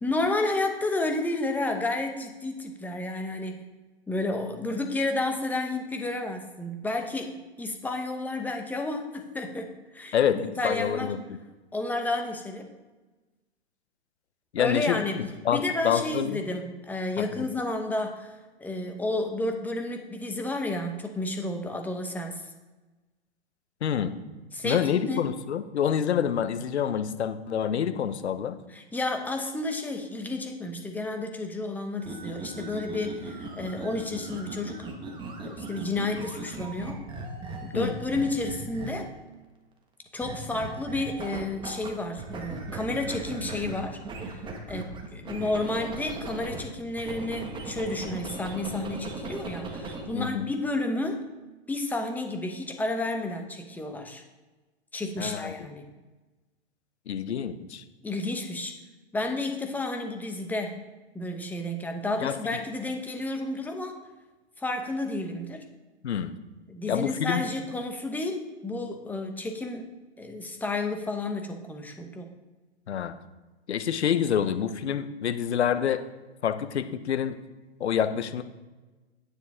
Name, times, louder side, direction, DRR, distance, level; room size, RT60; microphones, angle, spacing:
voice 1, 0.0-3.7 4.1-11.1 11.7-12.7 14.6-15.2 15.5-22.4 24.5-25.2 28.7-34.9 35.4-37.0 37.6-39.1 40.1-44.0 44.7-51.3 51.7-54.2 54.9-55.8 58.0-58.7 59.1-60.8 61.1-64.0 64.6-65.6 66.7-72.3, left 2 dB, 5° left, 5 dB, 0.9 m, -31 dB
voice 2, 10.1-11.2 14.5-16.4 17.3-17.5 23.8-24.1 24.6-28.6 37.7-37.9 50.1-50.5 55.2-55.7 57.1-57.8 62.2-62.4 66.0-66.3 66.9-67.5 72.9-73.1 73.7-76.0 76.4-77.4 77.8-78.4, left 8 dB, 75° left, 11 dB, 1.0 m, -27 dB
sound 1, 32.0-39.2 40.2-41.9 42.2-46.6 47.0-50.1, right 2 dB, 15° right, 1.4 m, -38 dB
9.5 x 8.9 x 3.6 m, 1.2 s
hypercardioid pair, 125°, 33 cm